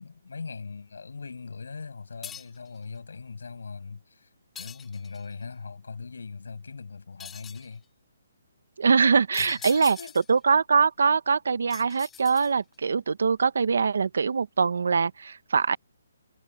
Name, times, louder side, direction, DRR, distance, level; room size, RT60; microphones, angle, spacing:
voice 1, 0.0-7.8 9.4-10.2, left 4 dB, 80° left, 6.8 m, -40 dB
sound 1, 2.2-2.7 4.5-5.3 7.2-7.7 9.3-10.4 11.7-12.7, left 8 dB, 5° left, 0.5 m, -43 dB
voice 2, 8.8-10.0 10.3-15.8, right 5 dB, 65° right, 1.3 m, -23 dB
hypercardioid pair, 175°, 0 cm